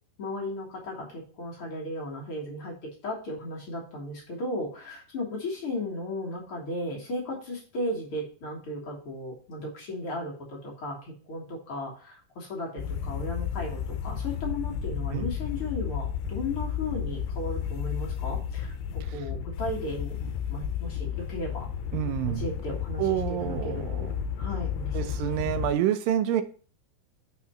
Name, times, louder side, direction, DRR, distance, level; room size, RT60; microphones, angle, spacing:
voice 1, 0.2-2.7 3.0-21.7 22.3-24.1 24.4-25.4, left 1 dB, 50° left, -3 dB, 2.2 m, -35 dB
sound 1, 12.8-25.7, left 8 dB, 85° left, 2.3 m, -32 dB
voice 2, 21.9-22.4 23.0-24.1 24.9-26.4, right 11 dB, 90° right, 11 dB, 2.4 m, -28 dB
5.8 x 4.3 x 5.6 m, 0.40 s
omnidirectional pair, 3.9 m